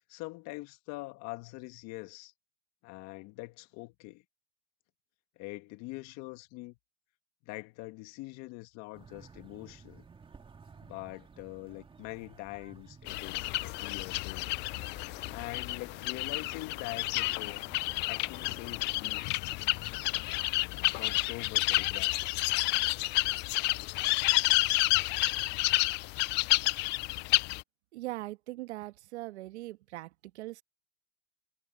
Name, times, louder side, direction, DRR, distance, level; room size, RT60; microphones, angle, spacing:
voice 1, 0.1-2.3 2.8-4.2 5.4-6.8 7.4-10.0 10.8-14.5 15.3-17.6 18.1-19.3 20.6-22.1, left 22 dB, 50° left, 1.9 m, -44 dB
sound 1, 8.9-19.0, right 5 dB, 15° right, 2.6 m, -55 dB
sound 2, 13.1-27.6, left 22 dB, 35° left, 0.4 m, -30 dB
voice 2, 27.9-30.6, right 18 dB, 75° right, 1.5 m, -41 dB
supercardioid pair, 120°, 34 cm